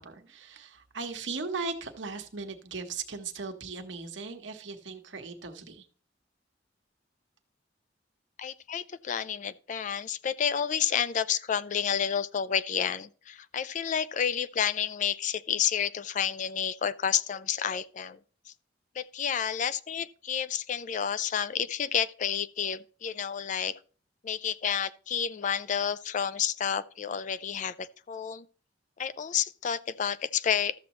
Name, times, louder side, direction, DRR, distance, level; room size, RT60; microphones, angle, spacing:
voice 1, 0.0-5.9, right 4 dB, 80° right, 1.2 m, -38 dB
voice 2, 8.4-18.2 18.5-18.6 19.0-23.7 24.2-28.4 29.0-30.7, left 8 dB, 40° left, 0.4 m, -30 dB
13.0 x 7.3 x 3.0 m
head